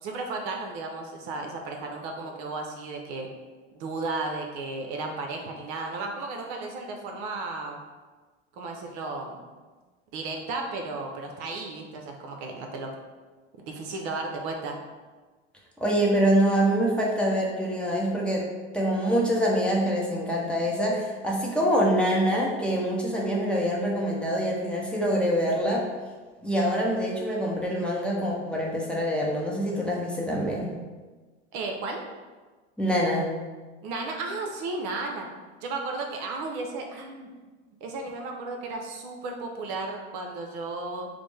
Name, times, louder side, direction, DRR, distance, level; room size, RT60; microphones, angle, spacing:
voice 1, 0.0-3.3 3.7-7.8 8.6-9.4 10.1-12.9 13.6-14.8 31.5-32.0 33.8-35.3 35.6-37.3 37.8-41.1, right 3 dB, 55° right, 2 dB, 0.7 m, -34 dB
voice 2, 15.8-18.4 18.7-25.8 26.4-30.7 32.8-33.3, equal, 5° left, -4 dB, 0.7 m, -25 dB
5.0 x 2.1 x 3.2 m, 1.3 s
hypercardioid pair, 95°, 35 cm